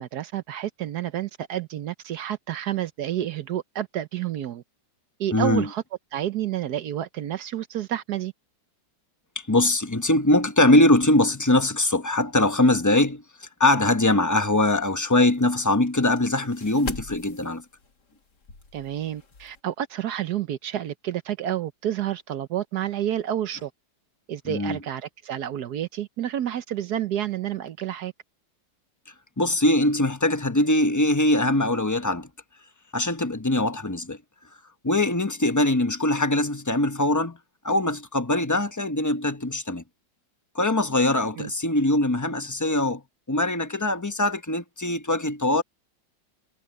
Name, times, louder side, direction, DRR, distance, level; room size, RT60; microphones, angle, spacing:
voice 1, 0.0-4.6 5.2-5.8 6.1-8.3 18.7-23.7 24.3-28.1 41.4-41.5, right 11 dB, 65° right, 1.2 m, -29 dB
voice 2, 5.3-5.7 9.3-17.6 24.5-24.8 29.4-32.3 32.9-34.2 34.8-37.4 37.6-39.8 40.5-43.0 43.3-45.6, left 1 dB, 15° left, 0.8 m, -22 dB
sound 1, 14.6-19.6, left 4 dB, 65° left, 2.9 m, -42 dB
omnidirectional pair, 2.0 m